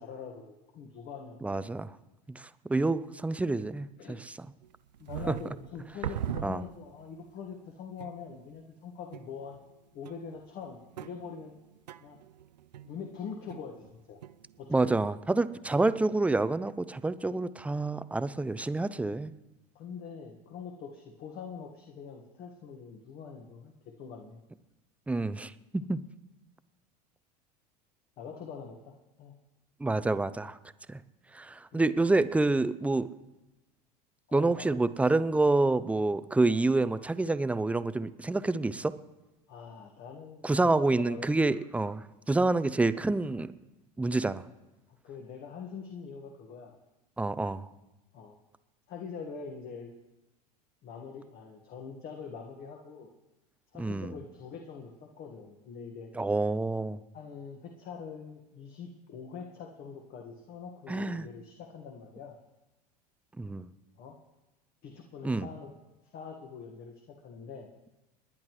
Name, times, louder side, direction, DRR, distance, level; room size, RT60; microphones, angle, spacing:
voice 1, 0.0-1.6 4.0-4.2 5.0-9.6 9.9-11.5 12.0-12.2 12.8-14.2 14.6-15.1 19.7-24.4 28.2-29.4 31.7-31.9 34.3-34.8 39.5-41.7 45.0-46.8 48.1-48.4 48.9-49.9 50.8-53.1 53.7-56.1 57.1-62.4 64.0-64.2 64.8-65.7 66.1-67.7, left 6 dB, 45° left, 2 dB, 1.6 m, -44 dB
voice 2, 1.4-1.9 2.3-4.4 5.3-5.4 6.4-6.6 14.7-19.3 25.1-26.0 29.8-30.6 30.9-31.0 31.3-33.1 34.3-39.0 40.4-43.5 44.0-44.4 47.2-47.7 53.8-54.1 56.1-57.0 60.9-61.3 63.4-63.7 65.2-65.5, right 2 dB, 5° right, 14 dB, 0.5 m, -28 dB
sound 1, 4.6-7.1 7.5-7.6 8.0-8.5 9.1-9.8 10.1-13.9 14.2-14.8, right 10 dB, 85° right, 0.4 m, -41 dB
29.5 x 10.5 x 3.1 m, 1.0 s
hypercardioid pair, 85°, 21 cm